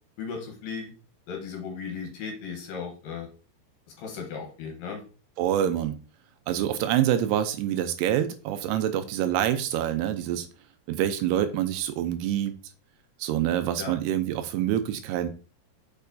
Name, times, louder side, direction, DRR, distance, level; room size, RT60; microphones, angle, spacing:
voice 1, 0.2-0.9 1.3-3.3 4.0-5.0 5.6-5.7 13.8-13.9, left 6 dB, 70° left, 2 dB, 2.3 m, -36 dB
voice 2, 5.4-6.0 6.5-10.5 10.9-12.5 13.2-15.3, right 11 dB, 80° right, 10 dB, 2.5 m, -26 dB
6.6 x 5.9 x 2.6 m, 0.35 s
omnidirectional pair, 4.8 m